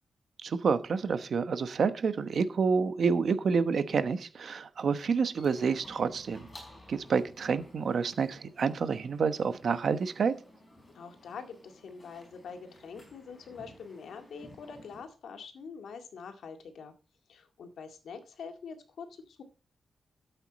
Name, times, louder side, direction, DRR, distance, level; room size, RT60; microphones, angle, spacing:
voice 1, 0.4-6.5 6.9-10.3, right 5 dB, 55° right, 1.1 m, -28 dB
sound 1, 4.8-15.0, left 1 dB, 20° left, 4.9 m, -55 dB
voice 2, 10.9-16.9 17.3-19.4, left 5 dB, 85° left, 2.1 m, -45 dB
13.0 x 8.0 x 4.1 m
wide cardioid pair, 165°, 0 cm